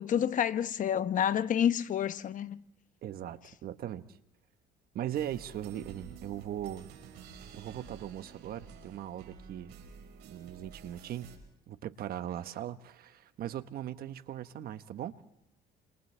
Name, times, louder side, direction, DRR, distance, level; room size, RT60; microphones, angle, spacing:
voice 1, 0.0-2.6, left 9 dB, 50° left, 0.9 m, -29 dB
voice 2, 3.0-4.2 4.9-6.9 7.5-9.7 10.2-11.3 11.7-15.2, right 11 dB, 65° right, 1.2 m, -39 dB
sound 1, 5.1-11.4, right 6 dB, 80° right, 5.4 m, -51 dB
29.5 x 27.5 x 3.4 m
cardioid pair, 110°, 17 cm